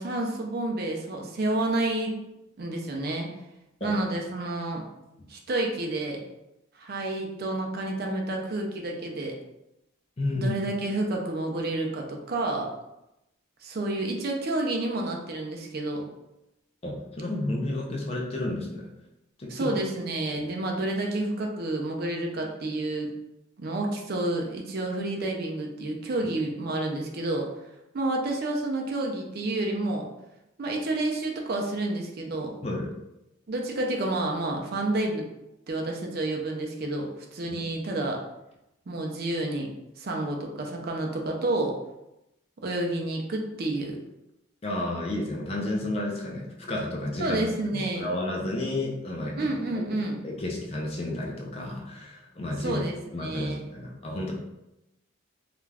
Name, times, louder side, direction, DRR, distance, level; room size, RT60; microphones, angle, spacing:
voice 1, 0.0-2.1 2.6-3.3 3.8-4.8 5.3-6.2 6.8-9.4 10.3-12.7 13.6-16.1 19.5-23.1 23.6-27.5 27.9-30.1 30.6-32.5 33.5-35.3 35.7-38.2 38.9-39.7 40.0-41.8 42.6-44.0 47.2-48.1 49.4-50.2 52.6-53.6, right 2 dB, 50° right, 1 dB, 0.4 m, -29 dB
voice 2, 10.2-10.6 16.8-18.9 19.4-19.8 20.4-20.5 32.6-32.9 37.5-37.6 44.6-47.5 47.7-49.5 49.7-52.8 53.1-54.3, left 1 dB, 30° left, -1 dB, 0.4 m, -31 dB
2.4 x 2.2 x 3.2 m, 0.90 s
head